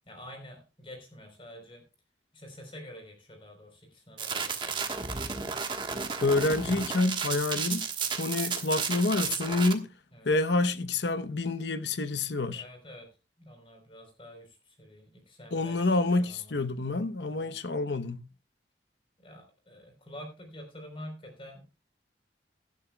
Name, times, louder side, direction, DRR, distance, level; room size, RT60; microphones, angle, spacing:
voice 1, 0.1-1.8 2.3-4.9 10.1-10.3 12.5-13.1 13.4-15.9 16.2-16.6 17.2-17.5 19.2-21.6, equal, 30° left, 3.8 m, -47 dB
sound 1, 4.2-9.7, right 5 dB, 25° right, 1.3 m, -33 dB
voice 2, 6.2-7.8 8.2-9.9 10.2-12.6 15.5-18.2, left 2 dB, 85° left, 0.9 m, -28 dB
18.0 x 12.0 x 2.3 m
head